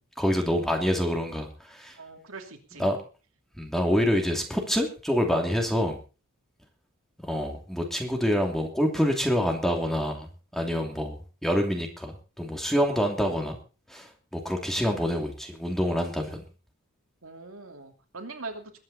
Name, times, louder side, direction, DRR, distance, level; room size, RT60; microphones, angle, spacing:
voice 1, 0.2-2.0 2.8-3.0 3.6-6.0 7.2-13.6 13.9-16.4, equal, ahead, 2 dB, 2.7 m, -27 dB
voice 2, 2.0-2.9 17.2-18.8, right 3 dB, 70° right, 4 dB, 2.9 m, -42 dB
21.5 x 9.6 x 4.2 m, 0.34 s
head